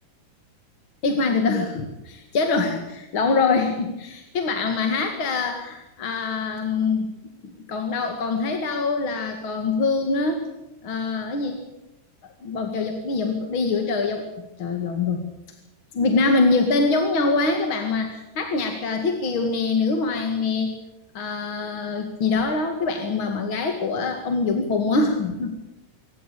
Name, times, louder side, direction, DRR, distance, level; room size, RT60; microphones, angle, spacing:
voice 1, 1.0-7.1 7.4-10.5 10.8-11.6 12.4-14.2 14.6-15.2 15.9-20.7 21.1-25.5, left 3 dB, 40° left, 4 dB, 2.1 m, -24 dB
25.5 x 15.0 x 8.5 m, 0.93 s
omnidirectional pair, 4.6 m